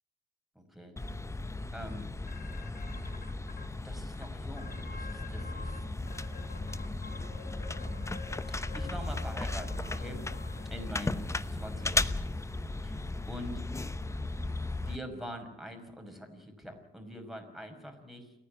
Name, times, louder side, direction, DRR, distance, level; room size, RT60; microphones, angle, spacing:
voice 1, 0.6-0.9 1.7-2.1 3.8-5.8 8.5-10.2 10.7-12.0 12.8-13.6 14.8-18.3, equal, ahead, 4 dB, 5.8 m, -44 dB
sound 1, 1.0-15.0, left 2 dB, 15° left, 0.9 m, -36 dB
sound 2, 2.3-3.6 4.1-4.2 4.6-5.8 6.1-11.3, left 4 dB, 50° left, 4.3 m, -49 dB
29.0 x 10.0 x 9.9 m, 0.88 s
cardioid pair, 90°, 20 cm